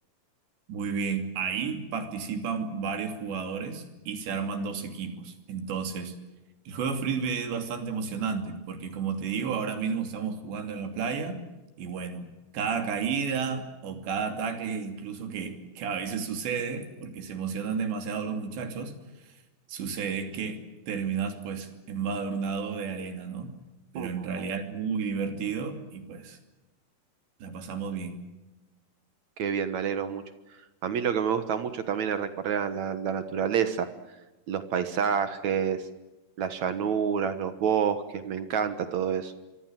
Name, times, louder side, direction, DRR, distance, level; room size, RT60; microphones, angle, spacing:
voice 1, 0.7-6.1 6.7-11.4 11.8-12.3 12.5-19.0 19.3-19.4 19.7-20.6 20.9-23.6 23.9-26.4 27.4-28.2, right 6 dB, 80° right, 7 dB, 5.0 m, -32 dB
voice 2, 29.4-30.2 30.8-33.9 34.5-35.8 36.4-39.3, right 7 dB, 60° right, 11 dB, 1.9 m, -28 dB
25.5 x 24.5 x 7.7 m, 1.1 s
omnidirectional pair, 4.9 m